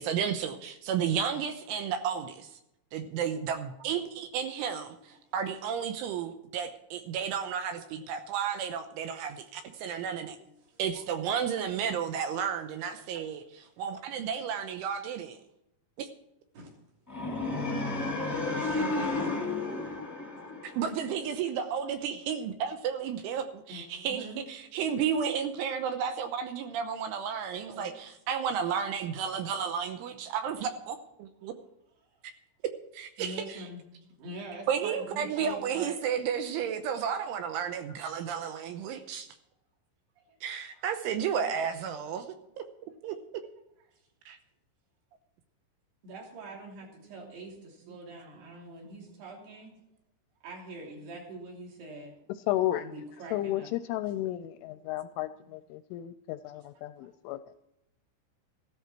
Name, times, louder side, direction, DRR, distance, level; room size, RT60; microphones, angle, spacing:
voice 1, 0.0-2.6 2.9-10.4 10.8-13.4 13.8-15.4 16.0-16.1 20.6-24.2 24.5-31.5 32.6-33.6 34.7-39.3 40.4-42.7 43.0-43.2 44.3-44.4, right 7 dB, 80° right, 8 dB, 3.2 m, -32 dB
voice 2, 9.6-10.0 10.2-10.3 10.6-11.0 12.2-12.4 12.8-13.2 13.6-14.1 16.5-16.7 18.1-19.3 23.7-24.5 27.7-28.0 31.4-31.6 32.1-32.2 33.2-33.8 34.1-36.0 36.3-36.7 37.9-38.0 40.3-40.4 40.7-40.8 42.4-42.5 43.0-43.2 43.9-44.0 46.0-49.8 50.4-52.2 52.8-53.7 57.0-57.1, right 2 dB, 55° right, 0 dB, 4.8 m, -45 dB
sound 1, 17.1-21.2, left 3 dB, 5° left, 1.3 m, -32 dB
voice 3, 52.5-52.9 53.3-57.5, left 14 dB, 85° left, 12 dB, 2.8 m, -33 dB
15.0 x 13.0 x 4.5 m, 0.83 s
omnidirectional pair, 5.9 m